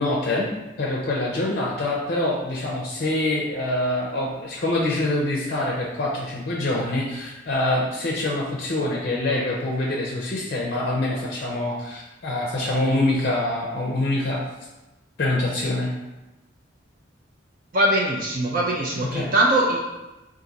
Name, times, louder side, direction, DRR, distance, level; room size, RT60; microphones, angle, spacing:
voice 1, 0.0-14.4 15.2-15.9 19.0-19.3, left 2 dB, 50° left, -3 dB, 0.5 m, -25 dB
voice 2, 17.7-19.9, right 1 dB, 45° right, -3 dB, 0.5 m, -21 dB
3.9 x 2.6 x 4.0 m, 1.0 s
head